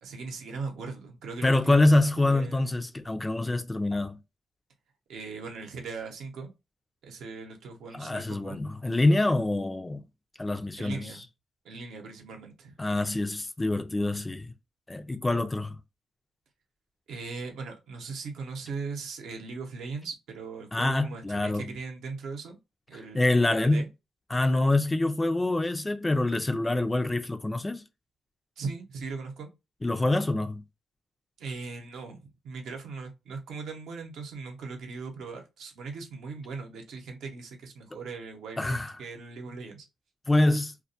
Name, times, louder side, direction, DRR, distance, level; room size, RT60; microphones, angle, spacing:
voice 1, 0.0-1.8 2.2-2.9 5.1-6.5 7.0-8.6 10.8-11.3 11.6-12.8 17.1-22.6 22.9-23.9 28.6-29.5 31.4-39.9, right 4 dB, 75° right, 0.7 m, -39 dB
voice 2, 1.4-4.2 7.9-10.0 10.4-11.0 12.8-14.5 14.9-15.8 20.7-21.7 23.1-23.8 24.3-27.8 29.8-30.6 38.6-38.9 40.3-40.7, left 2 dB, 15° left, 0.3 m, -25 dB
2.2 x 2.1 x 2.7 m
cardioid pair, 90°, 0 cm